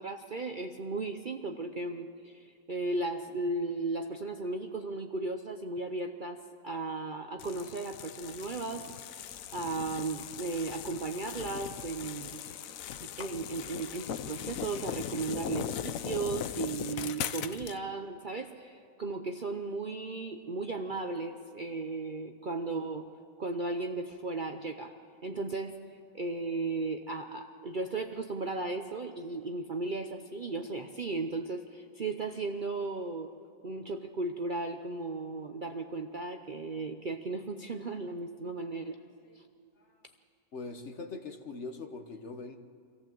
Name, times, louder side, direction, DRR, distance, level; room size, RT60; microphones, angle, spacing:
voice 1, 0.0-9.1 9.5-12.4 13.0-23.1 23.4-24.9 25.2-25.7 26.1-33.3 33.6-39.0 39.4-39.5, right 3 dB, 40° right, 5 dB, 0.8 m, -36 dB
sound 1, 7.4-17.8, left 10 dB, 65° left, 1.0 m, -39 dB
voice 2, 40.5-42.6, left 3 dB, 50° left, 6 dB, 1.4 m, -41 dB
25.0 x 15.0 x 7.6 m, 2.4 s
omnidirectional pair, 1.6 m